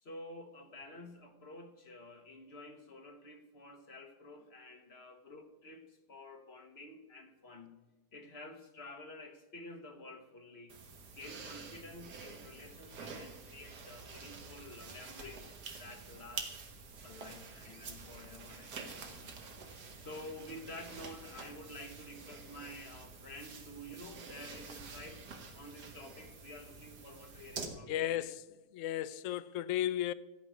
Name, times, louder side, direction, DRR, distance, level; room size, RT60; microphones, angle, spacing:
voice 1, 0.0-7.7 8.1-10.7 11.1-15.5 15.8-16.5 17.0-19.4 20.0-25.2 25.5-28.3, left 1 dB, 45° left, 1.3 m, -50 dB
sound 1, 10.7-27.7, right 4 dB, 90° right, 2.0 m, -48 dB
voice 2, 27.9-30.1, left 12 dB, 70° left, 0.8 m, -35 dB
15.0 x 5.5 x 9.3 m
omnidirectional pair, 1.7 m